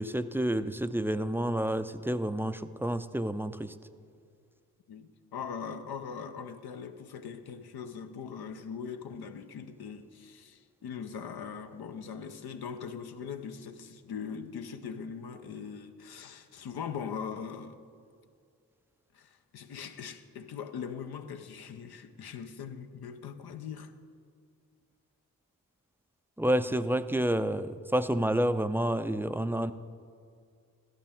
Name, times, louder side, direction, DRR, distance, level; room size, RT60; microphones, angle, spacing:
voice 1, 0.0-3.7 26.4-29.7, right 1 dB, 5° right, 0.4 m, -29 dB
voice 2, 4.9-17.8 19.1-23.9, left 6 dB, 80° left, 0.7 m, -41 dB
13.0 x 11.0 x 3.5 m
cardioid pair, 45°, 38 cm